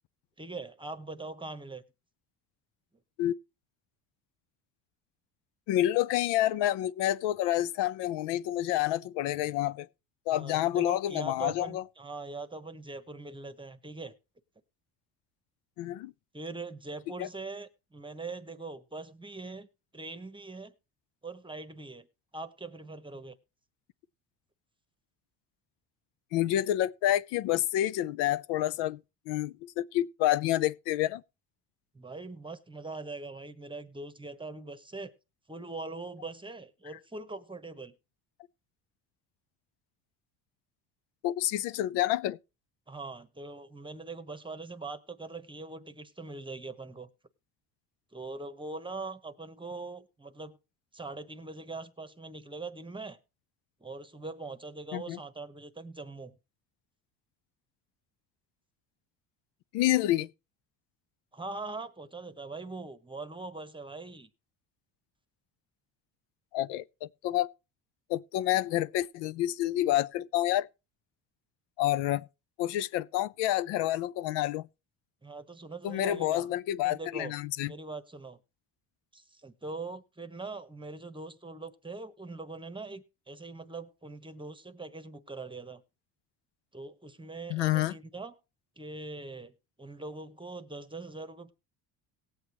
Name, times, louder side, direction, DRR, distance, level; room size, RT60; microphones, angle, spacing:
voice 1, 0.4-1.8 10.3-14.2 16.3-19.7 19.9-20.7 21.2-22.1 22.3-23.4 31.9-35.1 35.5-37.9 42.9-47.1 48.1-50.6 50.9-53.2 53.8-56.4 61.3-64.3 75.2-76.5 76.8-77.3 77.6-78.4 79.1-85.8 86.7-88.3 88.8-91.5, right 3 dB, 10° right, 0.9 m, -42 dB
voice 2, 5.7-9.9 10.3-11.8 15.8-16.1 17.2-17.3 26.3-29.0 29.3-31.2 41.2-42.4 54.9-55.2 59.7-60.3 66.5-67.5 68.1-70.7 71.8-72.2 72.6-74.7 75.8-77.7 87.5-87.9, left 14 dB, 80° left, 0.6 m, -28 dB
18.5 x 7.9 x 3.0 m
cardioid pair, 105°, 42 cm